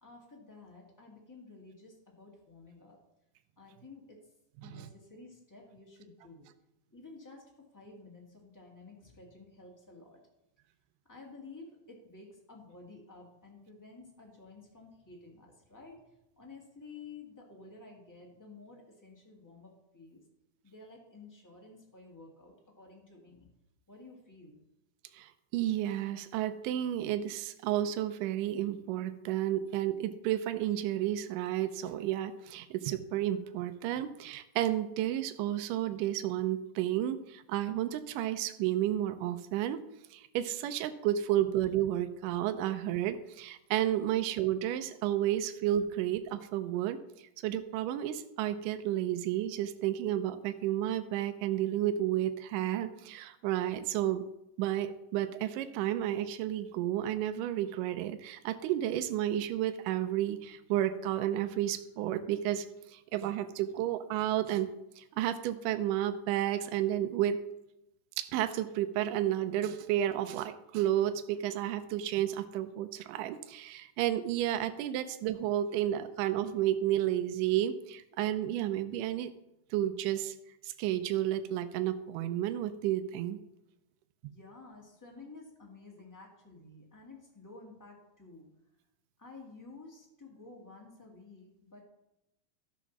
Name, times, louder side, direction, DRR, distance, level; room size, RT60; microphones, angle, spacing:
voice 1, 0.0-3.0 3.6-4.3 4.6-6.5 6.9-10.2 11.1-16.1 16.3-20.2 20.6-23.5 23.9-24.5 84.2-88.5 89.2-91.8, left 3 dB, 10° left, -1 dB, 0.9 m, -52 dB
voice 2, 25.1-39.8 40.1-54.3 54.6-64.7 65.0-67.4 68.2-79.3 79.7-80.4 80.6-83.4, right 12 dB, 85° right, 9 dB, 2.1 m, -32 dB
13.0 x 5.0 x 5.9 m, 0.87 s
omnidirectional pair, 3.8 m